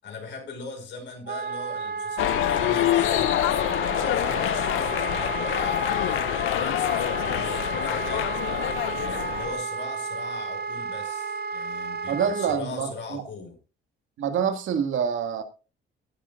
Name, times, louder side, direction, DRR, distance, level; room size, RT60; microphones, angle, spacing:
voice 1, 0.0-8.3 8.9-13.6, left 4 dB, 65° left, 5.4 m, -39 dB
Wind instrument woodwind instrument, 1.3-12.6, right 5 dB, 55° right, 0.9 m, -32 dB
sound 1, 2.2-9.6, left 16 dB, 90° left, 0.5 m, -26 dB
voice 2, 12.1-13.2 14.2-15.4, right 7 dB, 80° right, 2.0 m, -26 dB
16.5 x 11.5 x 2.5 m
cardioid pair, 90°, 20 cm